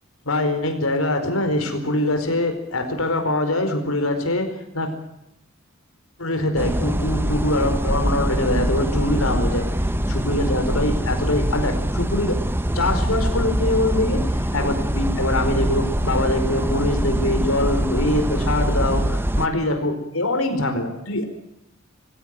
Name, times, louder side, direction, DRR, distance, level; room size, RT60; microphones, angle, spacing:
voice 1, 0.2-4.9 6.2-9.7 10.1-12.4 12.7-21.3, left 1 dB, 80° left, 6 dB, 4.7 m, -23 dB
sound 1, 6.6-19.5, equal, 10° right, 1.1 m, -23 dB
21.0 x 16.5 x 9.2 m, 0.79 s
head